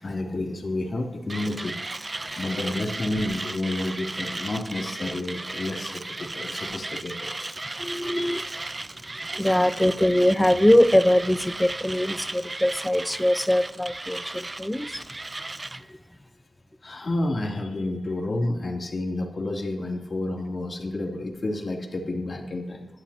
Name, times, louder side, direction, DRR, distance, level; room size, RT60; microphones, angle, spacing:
voice 1, 0.0-1.8 2.4-6.0 6.3-7.7 9.4-9.8 13.1-13.3 14.8-15.0 16.8-22.9, left 2 dB, 55° left, 0 dB, 3.0 m, -30 dB
Mechanisms, 1.3-15.8, right 2 dB, 30° right, 0.6 m, -35 dB
voice 2, 7.8-8.4 9.3-15.0, left 1 dB, 10° left, 13 dB, 0.8 m, -22 dB
22.0 x 11.5 x 2.9 m, 0.96 s
cardioid pair, 55°, 0 cm